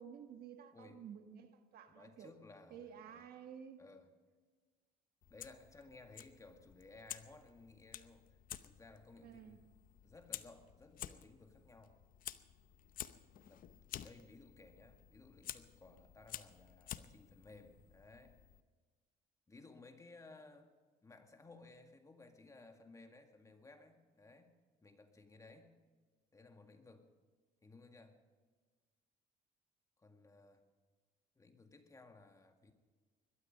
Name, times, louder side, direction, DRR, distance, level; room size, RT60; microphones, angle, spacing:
voice 1, 0.0-2.3 2.7-3.8 9.2-9.7, right 8 dB, 65° right, 1.4 m, -53 dB
voice 2, 0.7-1.0 1.9-3.3 3.8-4.1 5.3-8.2 8.6-9.6 10.0-12.0 13.4-18.4 19.5-20.7 21.0-24.6 24.8-25.8 26.3-27.1 27.6-28.2 30.0-30.6 31.4-32.7, left 3 dB, 20° left, 2.0 m, -59 dB
Fire, 5.2-18.6, left 11 dB, 55° left, 0.8 m, -52 dB
21.5 x 12.5 x 5.3 m
cardioid pair, 110°, 17 cm